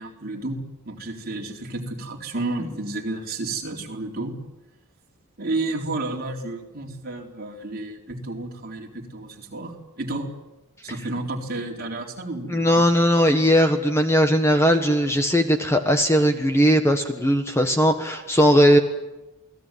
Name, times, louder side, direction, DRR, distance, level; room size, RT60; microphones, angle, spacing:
voice 1, 0.0-4.3 5.4-10.3 10.8-12.9, right 2 dB, 45° right, 0 dB, 4.1 m, -31 dB
voice 2, 12.5-18.8, equal, 10° left, 6 dB, 1.5 m, -18 dB
28.5 x 19.0 x 9.3 m, 1.0 s
head